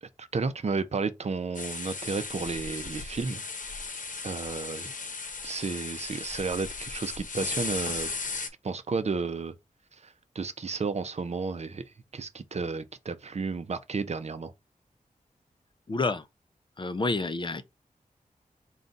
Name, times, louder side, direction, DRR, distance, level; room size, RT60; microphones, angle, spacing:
voice 1, 0.0-3.4 4.2-4.9 5.4-8.1 8.6-9.5 9.9-11.8 12.1-14.5, right 4 dB, 50° right, 0.6 m, -32 dB
sound 1, 1.5-8.5, left 4 dB, 65° left, 0.9 m, -36 dB
voice 2, 15.9-16.2 16.8-17.6, left 3 dB, 35° left, 0.6 m, -28 dB
3.9 x 2.4 x 3.9 m
wide cardioid pair, 90°, 14 cm